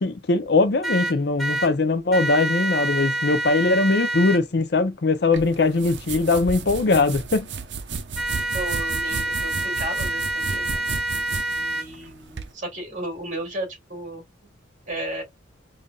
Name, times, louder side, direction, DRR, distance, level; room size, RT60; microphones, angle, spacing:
voice 1, 0.0-7.5, left 3 dB, 55° left, 0.5 m, -21 dB
sound 1, 0.8-1.7 2.1-4.4 8.1-11.8, right 2 dB, ahead, 1.1 m, -27 dB
sound 2, 5.3-12.5, right 5 dB, 65° right, 0.6 m, -33 dB
voice 2, 8.5-10.7 11.5-14.2 14.9-15.2, right 1 dB, 40° right, 2.2 m, -34 dB
5.2 x 2.5 x 2.3 m
head